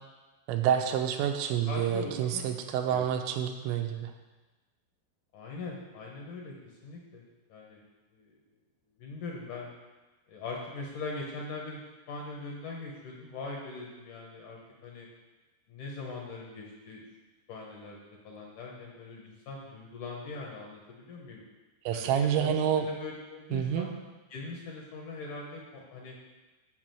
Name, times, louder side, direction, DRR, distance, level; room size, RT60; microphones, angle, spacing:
voice 1, 0.5-4.1 21.9-22.9 23.5-23.9, right 9 dB, 85° right, 5 dB, 3.0 m, -28 dB
voice 2, 1.7-3.1 5.3-6.6 6.8-7.2 7.5-7.8 8.1-8.4 9.0-9.7 10.3-11.8 12.1-15.1 15.7-17.0 17.5-21.4 21.9-23.9 24.3-26.2, left 3 dB, 70° left, -1 dB, 2.0 m, -41 dB
7.5 x 5.9 x 7.6 m, 1.2 s
omnidirectional pair, 5.2 m